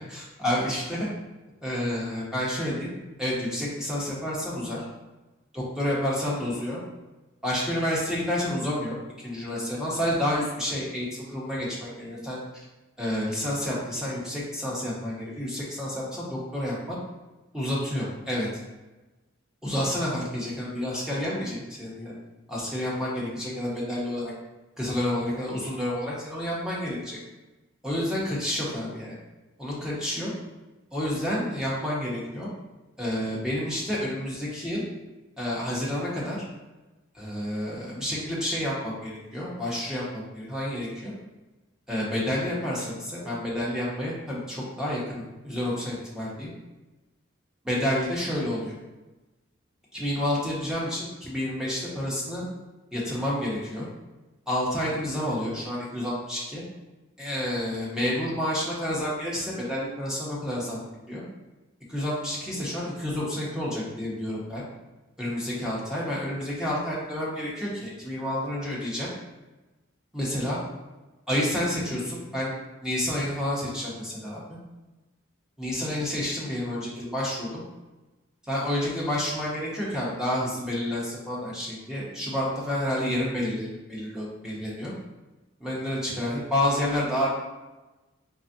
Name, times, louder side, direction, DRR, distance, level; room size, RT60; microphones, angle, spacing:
voice 1, 0.1-1.1 1.6-2.9 3.2-4.8 5.5-6.8 7.4-9.0 9.2-12.4 13.0-17.0 17.5-18.5 19.6-22.1 22.5-24.3 24.8-27.2 27.8-29.2 29.6-30.3 30.9-32.5 33.0-34.8 35.4-36.4 37.1-41.1 41.9-46.5 47.6-48.7 49.9-52.4 52.9-53.9 54.5-56.6 57.2-60.8 61.1-61.2 61.9-64.6 65.2-69.1 70.1-70.6 71.3-72.5 72.8-74.4 75.6-77.6 78.5-84.9 85.6-87.3, left 1 dB, 5° right, -6 dB, 0.9 m, -29 dB
4.0 x 3.4 x 2.7 m, 1.1 s
head